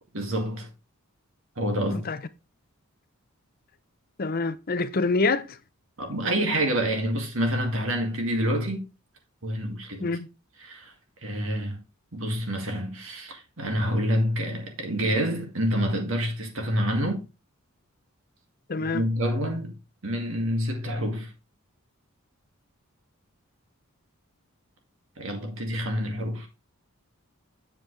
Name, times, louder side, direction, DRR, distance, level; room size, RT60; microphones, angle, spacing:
voice 1, 0.1-0.7 1.6-2.1 6.0-8.8 9.4-10.2 10.6-10.9 11.2-11.8 12.1-17.2 18.8-21.3 25.2-26.5, equal, 65° right, 2.2 m, -27 dB
voice 2, 4.2-5.6 10.0-10.3 18.7-19.0, left 3 dB, 45° left, 0.6 m, -26 dB
7.5 x 7.4 x 3.3 m
head